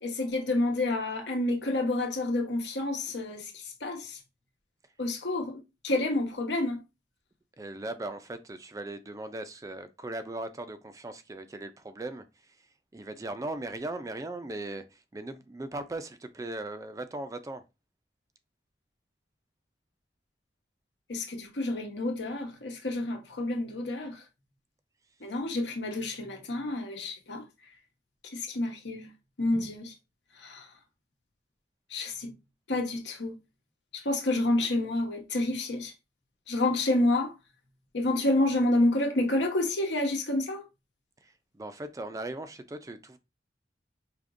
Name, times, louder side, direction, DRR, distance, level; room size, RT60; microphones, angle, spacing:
voice 1, 0.0-4.2 5.0-6.8 21.1-24.2 25.2-27.4 28.3-29.1 29.4-29.9 30.4-30.7 31.9-32.3 32.7-33.3 33.9-35.9 36.5-37.3 37.9-40.6, left 2 dB, 85° left, 1.0 m, -29 dB
voice 2, 7.6-12.6 12.9-17.6 41.2-43.2, right 2 dB, 20° right, 0.3 m, -38 dB
5.0 x 2.9 x 2.5 m
head